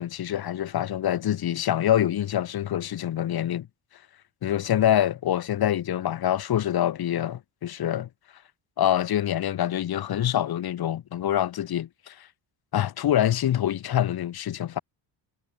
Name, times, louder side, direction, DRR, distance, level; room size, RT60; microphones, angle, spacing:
voice 1, 0.0-3.7 4.4-8.1 8.8-12.3 12.7-14.8, left 11 dB, 55° left, 1.3 m, -25 dB
cardioid pair, 140°, 46 cm